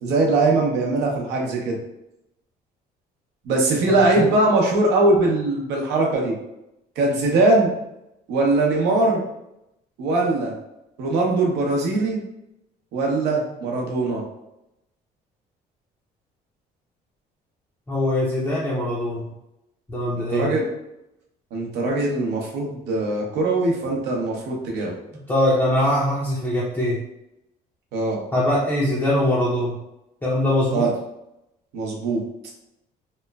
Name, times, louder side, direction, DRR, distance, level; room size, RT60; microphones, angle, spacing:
voice 1, 0.0-1.8 3.5-6.4 7.0-7.7 8.3-9.2 10.0-10.5 11.0-12.2 12.9-14.2 20.3-20.7 21.5-24.9 27.9-28.2 30.7-30.9 31.7-32.2, right 2 dB, 80° right, -1 dB, 0.7 m, -21 dB
voice 2, 3.9-4.3 17.9-19.3 19.9-20.5 25.3-27.0 28.3-29.8 30.2-30.8, left 1 dB, 10° left, -7 dB, 0.5 m, -22 dB
3.0 x 2.1 x 2.2 m, 0.87 s
cardioid pair, 110°, 17 cm